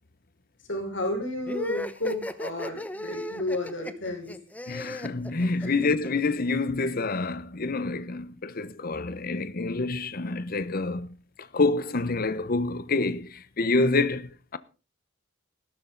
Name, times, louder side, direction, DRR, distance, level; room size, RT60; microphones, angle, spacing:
voice 1, 0.7-4.3 5.6-5.8, left 1 dB, 65° left, 5.9 m, -32 dB
sound 1, 1.5-6.1, left 1 dB, 10° left, 0.8 m, -36 dB
voice 2, 4.7-11.1 11.5-14.6, left 3 dB, 50° left, 0.9 m, -27 dB
16.0 x 12.5 x 3.9 m
head